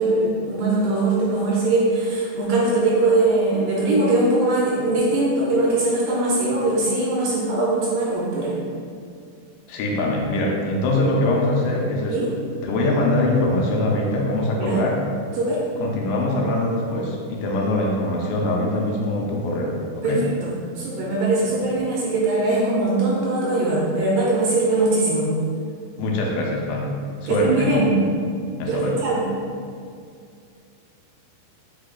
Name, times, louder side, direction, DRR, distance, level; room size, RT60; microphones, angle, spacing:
voice 1, 0.0-8.5 12.1-12.3 14.6-14.8 15.4-15.6 20.0-20.5 20.8-25.3 27.2-27.9 28.7-29.2, right 2 dB, 80° right, -5 dB, 2.1 m, -21 dB
voice 2, 9.7-12.3 12.6-15.0 15.8-20.3 26.0-27.0 27.2-27.8 28.6-28.9, left 1 dB, 80° left, -1 dB, 2.4 m, -23 dB
5.7 x 2.3 x 3.7 m, 2.3 s
omnidirectional pair, 4.3 m